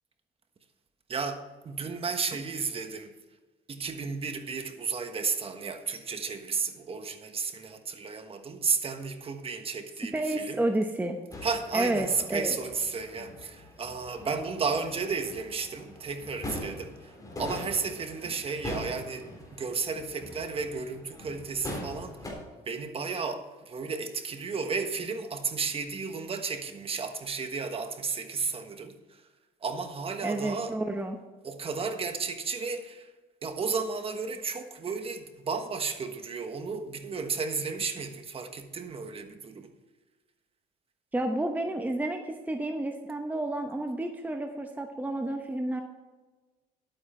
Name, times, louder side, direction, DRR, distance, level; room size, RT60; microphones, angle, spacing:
voice 1, 1.1-3.1 3.7-10.6 11.4-22.2 22.6-29.2 29.6-30.8 31.4-33.1 33.4-39.7, right 5 dB, 35° right, 1.3 m, -33 dB
voice 2, 10.1-11.2 11.7-12.5 30.2-31.2 41.1-45.8, right 1 dB, 10° right, 0.9 m, -30 dB
sound 1, 11.3-22.3, left 1 dB, 20° left, 3.6 m, -42 dB
11.5 x 9.0 x 4.4 m
cardioid pair, 110°, 17 cm